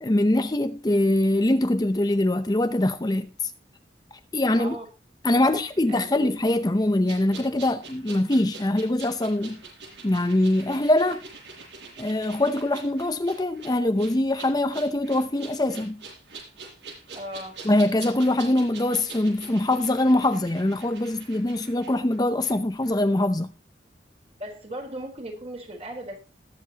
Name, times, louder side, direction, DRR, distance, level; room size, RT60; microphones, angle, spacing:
voice 1, 0.0-3.5 4.3-4.8 5.2-9.6 10.0-11.3 12.0-16.0 17.6-23.5, left 1 dB, 20° left, 0.6 m, -23 dB
voice 2, 5.4-6.3 17.1-17.5 24.4-26.2, right 1 dB, 35° right, 4.0 m, -37 dB
sound 1, 7.1-22.5 22.8-22.9, right 4 dB, 90° right, 7.5 m, -44 dB
20.0 x 7.9 x 2.9 m
head